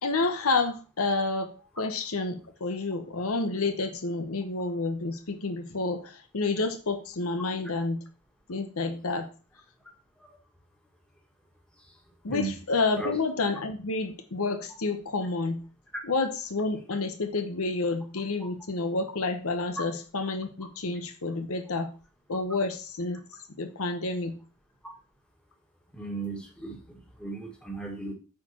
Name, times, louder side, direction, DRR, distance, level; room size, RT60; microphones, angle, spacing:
voice 1, 0.0-8.0 8.5-9.3 12.2-15.6 16.0-21.9 22.3-23.2 23.6-24.4, left 3 dB, 70° left, 6 dB, 0.9 m, -29 dB
voice 2, 25.9-28.1, right 3 dB, 5° left, 0 dB, 1.8 m, -36 dB
8.7 x 4.5 x 4.3 m, 0.35 s
head